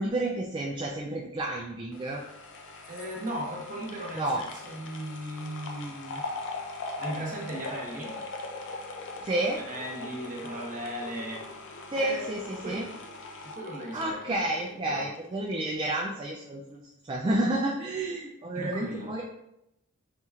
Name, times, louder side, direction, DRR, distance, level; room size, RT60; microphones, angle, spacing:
voice 1, 0.0-2.2 4.1-4.4 9.2-9.6 11.9-12.9 13.9-19.2, right 1 dB, 25° right, -2 dB, 0.3 m, -30 dB
sound 1, 1.9-15.2 15.5-15.6, left 3 dB, 60° left, 0.5 m, -41 dB
voice 2, 2.9-6.3 7.0-8.2 9.5-11.4 11.9-12.9 13.4-15.0 18.5-19.1, right 1 dB, 40° right, -3 dB, 1.0 m, -37 dB
4.2 x 3.0 x 2.4 m, 0.86 s
head